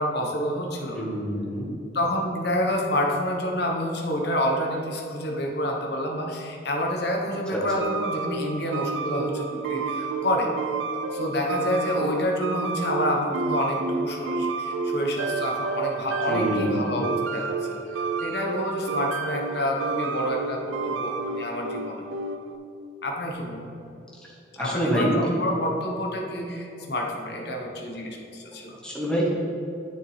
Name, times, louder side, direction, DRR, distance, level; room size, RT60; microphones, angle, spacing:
voice 1, 0.0-1.1 1.9-10.5 11.1-17.0 17.3-17.5 17.9-22.0 23.0-23.7 24.6-28.8, equal, 55° left, 0 dB, 1.1 m, -28 dB
voice 2, 0.9-1.7 7.5-7.6 16.3-17.0 24.2-25.1 26.8-26.9 28.8-29.3, equal, 5° left, -5 dB, 1.4 m, -27 dB
sound 1, 7.8-22.6, right 4 dB, 80° right, 0.5 m, -30 dB
9.6 x 6.8 x 3.4 m, 2.7 s
head